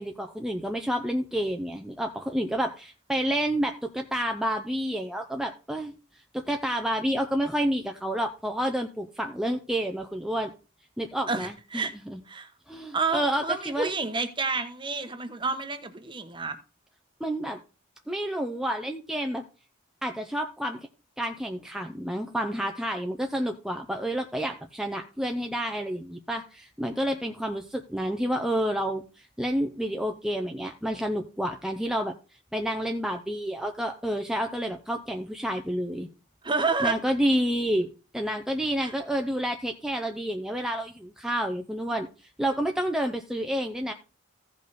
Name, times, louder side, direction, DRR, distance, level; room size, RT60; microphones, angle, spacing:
voice 1, 0.0-5.9 6.3-10.5 11.0-12.2 12.7-13.9 17.2-17.6 18.1-19.4 20.0-20.8 21.2-32.1 32.5-36.1 36.8-37.9 38.1-42.1 42.4-43.9, equal, 5° right, 0.6 m, -29 dB
voice 2, 11.3-11.9 12.3-12.5 12.9-16.6 36.4-37.0 38.8-38.9, right 4 dB, 25° right, 1.0 m, -29 dB
15.0 x 5.3 x 4.1 m
head